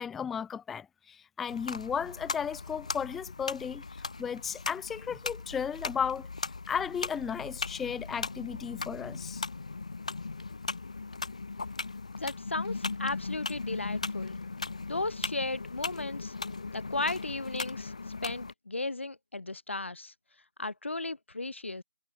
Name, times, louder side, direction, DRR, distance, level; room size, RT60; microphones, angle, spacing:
voice 1, 0.0-6.3 6.7-9.4, left 7 dB, ahead, 0.8 m, -35 dB
sound 1, 1.5-18.5, left 3 dB, 35° left, 1.2 m, -38 dB
voice 2, 12.2-14.4 14.9-16.3 16.7-17.9 18.2-20.1 20.6-21.8, left 2 dB, 85° left, 2.0 m, -35 dB
figure-of-eight pair, 180°, 6 cm